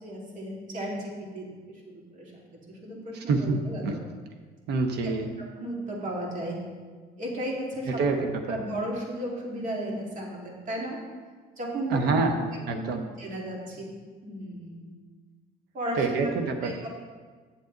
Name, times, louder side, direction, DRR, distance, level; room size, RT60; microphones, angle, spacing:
voice 1, 0.0-1.5 1.9-4.0 5.0-5.1 5.6-6.6 7.2-8.0 8.5-11.0 11.6-12.2 12.7-12.8 13.2-13.9 14.2-14.9 15.7-16.3 16.6-16.9, right 1 dB, 50° right, -2 dB, 2.3 m, -34 dB
voice 2, 3.3-3.6 3.8-4.0 4.7-5.3 7.9-8.6 11.9-12.4 12.7-13.0 16.0-16.8, right 4 dB, 75° right, 5 dB, 0.9 m, -26 dB
7.9 x 7.3 x 3.9 m, 1.5 s
cardioid pair, 110°, 17 cm